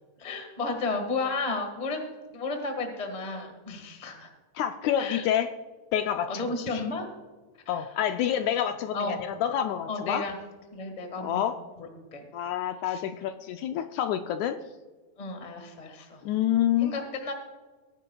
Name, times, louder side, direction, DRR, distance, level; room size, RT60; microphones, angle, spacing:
voice 1, 0.2-2.1 2.3-4.3 5.0-5.2 6.3-7.0 7.6-7.9 8.9-9.2 9.9-10.4 10.7-12.3 12.8-13.0 15.2-16.2 16.8-17.3, left 3 dB, 30° left, 4 dB, 0.7 m, -33 dB
voice 2, 4.6-5.5 5.9-6.5 6.7-6.8 7.7-10.2 11.2-11.6 12.3-14.6 16.2-16.9, left 10 dB, 80° left, 7 dB, 1.7 m, -27 dB
19.5 x 10.0 x 2.3 m, 1.4 s
omnidirectional pair, 3.6 m